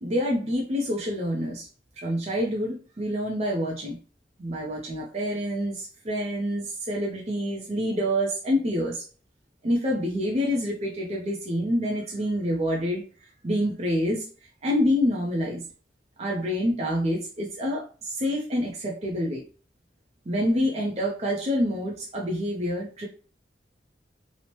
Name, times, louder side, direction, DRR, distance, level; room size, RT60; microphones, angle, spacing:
voice 1, 0.0-1.7 2.0-4.0 4.4-9.1 9.6-13.0 13.4-14.3 14.6-15.6 16.2-19.4 20.3-23.1, equal, 35° right, -1 dB, 0.5 m, -27 dB
2.9 x 2.1 x 2.9 m, 0.37 s
head